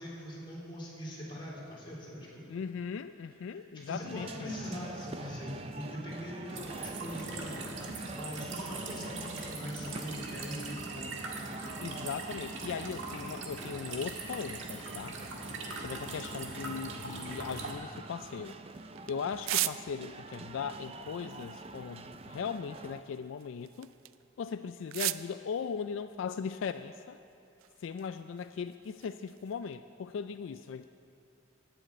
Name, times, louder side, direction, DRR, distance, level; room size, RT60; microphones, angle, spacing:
voice 1, 0.0-2.4 3.5-11.2, equal, 25° left, -6 dB, 3.3 m, -42 dB
voice 2, 2.5-4.5 11.8-15.2 15.8-18.6 19.1-23.9 24.4-27.2 27.8-30.9, left 6 dB, 75° left, 10 dB, 0.3 m, -38 dB
sound 1, 4.0-23.0, right 3 dB, 30° right, 0.4 m, -46 dB
sound 2, 6.5-17.7, right 3 dB, 70° right, 1.6 m, -41 dB
sound 3, 18.1-20.3 21.1-24.3 24.8-25.3 26.2-27.3 27.6-29.8, right 15 dB, 90° right, 0.4 m, -40 dB
11.0 x 9.1 x 8.3 m, 2.5 s
head